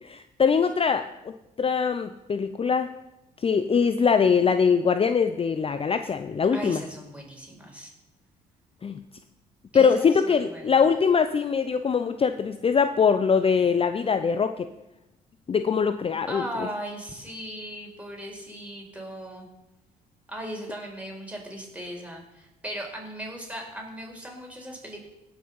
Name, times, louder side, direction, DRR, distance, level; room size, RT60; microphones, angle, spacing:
voice 1, 0.0-1.3 1.6-2.9 3.4-6.8 8.8-9.0 9.7-14.7 15.5-16.7, left 6 dB, 30° left, 10 dB, 0.6 m, -22 dB
voice 2, 6.5-7.9 9.7-10.7 16.3-19.5 20.3-25.1, equal, 5° right, -1 dB, 4.7 m, -38 dB
17.5 x 6.0 x 5.5 m, 0.96 s
hypercardioid pair, 60°, 18 cm